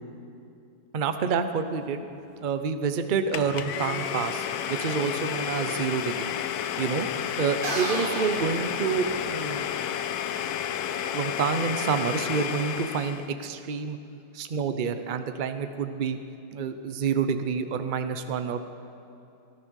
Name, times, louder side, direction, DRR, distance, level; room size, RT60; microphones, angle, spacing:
voice 1, 0.9-2.1 2.4-6.3 6.8-7.1 7.4-9.7 11.1-14.0 14.3-16.2 16.5-18.6, right 6 dB, 50° right, 9 dB, 0.6 m, -28 dB
Domestic sounds home sounds, 3.3-13.3, left 9 dB, 70° left, 1.1 m, -31 dB
sound 1, 7.6-9.6, right 2 dB, 30° right, 1.5 m, -33 dB
17.5 x 11.5 x 6.4 m, 2.7 s
omnidirectional pair, 1.9 m